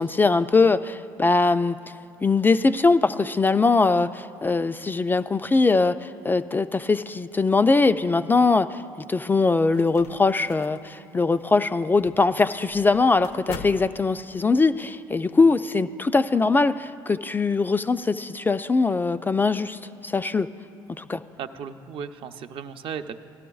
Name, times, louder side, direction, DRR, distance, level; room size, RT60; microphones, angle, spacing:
voice 1, 0.0-1.8 2.2-8.8 9.1-20.5 21.0-21.2, left 3 dB, 20° left, 11 dB, 0.3 m, -21 dB
sound 1, 9.3-14.6, left 6 dB, 70° left, 0.6 m, -43 dB
voice 2, 21.4-23.1, right 7 dB, 55° right, 8 dB, 0.6 m, -35 dB
18.0 x 12.0 x 2.3 m, 2.5 s
hypercardioid pair, 70°, 11 cm